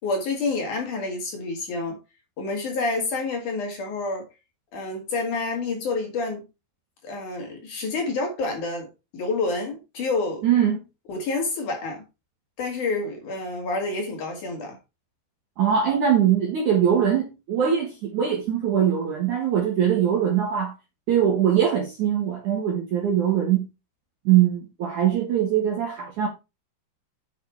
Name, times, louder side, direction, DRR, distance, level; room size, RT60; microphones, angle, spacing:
voice 1, 0.0-2.0 2.4-4.3 4.7-6.4 7.0-8.9 9.1-10.4 11.1-12.0 12.6-14.8, left 3 dB, 50° left, 3.4 m, -28 dB
voice 2, 10.4-10.8 15.6-20.7 21.1-23.6 24.2-26.3, right 9 dB, 60° right, 2.1 m, -22 dB
8.1 x 6.7 x 4.6 m
omnidirectional pair, 5.4 m